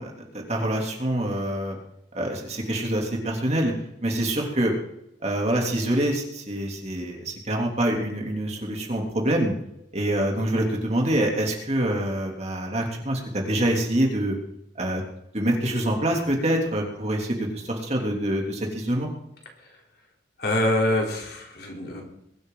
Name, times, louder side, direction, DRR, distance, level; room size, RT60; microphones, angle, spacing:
voice 1, 0.0-1.8 2.1-3.7 4.0-4.7 5.2-9.5 9.9-14.3 14.7-15.0 15.3-19.1, right 1 dB, 35° right, 0 dB, 3.1 m, -25 dB
voice 2, 20.4-22.0, left 1 dB, 60° left, 0 dB, 3.7 m, -25 dB
22.0 x 12.0 x 4.0 m, 0.81 s
head